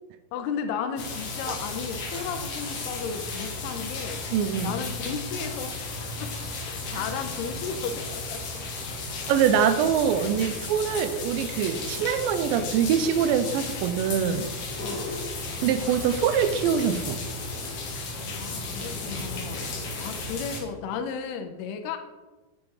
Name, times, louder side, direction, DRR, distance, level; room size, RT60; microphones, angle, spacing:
voice 1, 0.3-4.2 4.6-6.4 6.6-8.6 14.8-15.2 18.3-19.6 20.0-22.0, left 6 dB, 85° left, 7 dB, 2.7 m, -34 dB
sound 1, 1.0-20.6, left 3 dB, 70° left, 1.5 m, -34 dB
voice 2, 4.3-4.7 9.3-14.5 15.6-17.2, right 8 dB, 85° right, 10 dB, 2.1 m, -24 dB
sound 2, 14.5-15.7 16.0-20.4, left 1 dB, 50° left, 3.2 m, -41 dB
8.6 x 4.2 x 4.7 m, 1.2 s
omnidirectional pair, 4.5 m